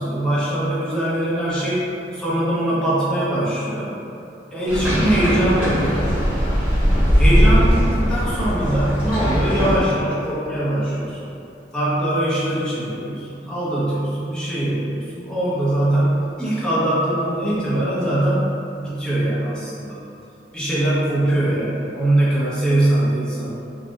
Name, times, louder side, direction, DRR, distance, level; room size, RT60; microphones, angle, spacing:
voice 1, 0.0-1.8 2.1-3.9 4.5-6.1 7.2-11.4 11.7-18.5 18.8-20.0 20.5-23.5, right 1 dB, 5° left, -10 dB, 0.7 m, -22 dB
sound 1, 4.7-9.8, equal, 10° right, 1.0 m, -19 dB
3.6 x 2.4 x 2.5 m, 2.6 s
head